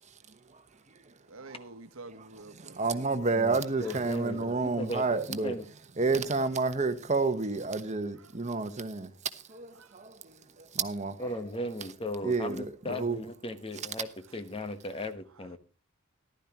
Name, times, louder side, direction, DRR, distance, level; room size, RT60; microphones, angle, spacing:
voice 1, 1.3-3.0 3.8-4.0 7.9-8.4 9.7-10.0, right 3 dB, 90° right, 1.1 m, -49 dB
voice 2, 2.6-5.6 6.0-9.1 9.5-10.4 10.7-11.2 12.2-13.2, right 3 dB, 35° right, 1.1 m, -30 dB
voice 3, 3.3-5.7 11.2-15.6, left 1 dB, 25° left, 1.1 m, -37 dB
14.5 x 12.0 x 3.0 m
head